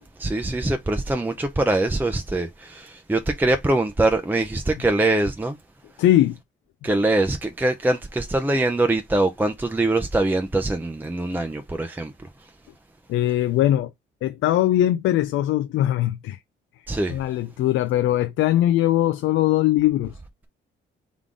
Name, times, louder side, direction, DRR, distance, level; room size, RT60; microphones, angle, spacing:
voice 1, 0.2-5.6 6.8-12.3 16.9-17.2, right 2 dB, 10° right, 0.6 m, -23 dB
voice 2, 6.0-6.4 13.1-13.9 14.2-16.4 17.1-20.2, left 13 dB, 80° left, 0.4 m, -21 dB
3.8 x 3.6 x 3.7 m
cardioid pair, 90°, 20 cm